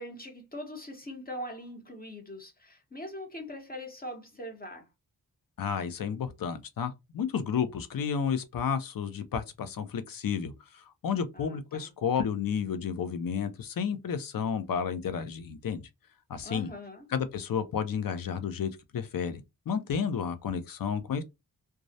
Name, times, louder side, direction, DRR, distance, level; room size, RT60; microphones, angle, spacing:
voice 1, 0.0-4.9 11.3-11.9 16.4-17.1, equal, 25° left, 0.8 m, -42 dB
voice 2, 5.6-15.9 16.3-16.7 17.1-21.2, left 7 dB, 60° left, 0.5 m, -32 dB
2.3 x 2.0 x 2.6 m
wide cardioid pair, 70°, 39 cm